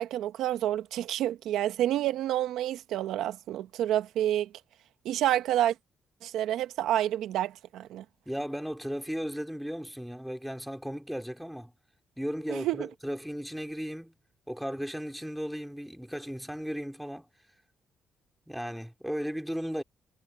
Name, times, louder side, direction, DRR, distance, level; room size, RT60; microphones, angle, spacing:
voice 1, 0.0-4.5 5.0-5.7 6.2-8.0 12.5-12.9, right 12 dB, 85° right, 1.0 m, -29 dB
voice 2, 8.3-11.7 12.2-14.1 14.5-17.3 18.5-19.8, equal, ahead, 3.7 m, -35 dB
cardioid pair, 90°, 0 cm